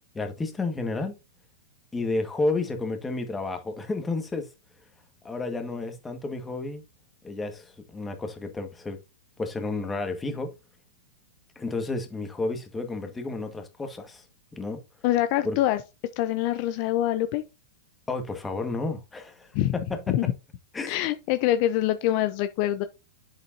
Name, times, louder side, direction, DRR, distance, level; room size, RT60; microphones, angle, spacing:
voice 1, 0.1-1.1 1.9-4.5 5.2-6.8 7.2-9.0 9.4-10.5 11.6-14.2 14.5-14.8 15.4-15.6 18.1-20.1 20.7-20.9, left 3 dB, 10° left, 1.7 m, -31 dB
voice 2, 15.0-15.8 16.2-17.4 19.5-19.7 20.1-20.2 20.9-22.8, left 13 dB, 50° left, 0.8 m, -25 dB
8.1 x 7.4 x 2.8 m
hypercardioid pair, 125°, 0 cm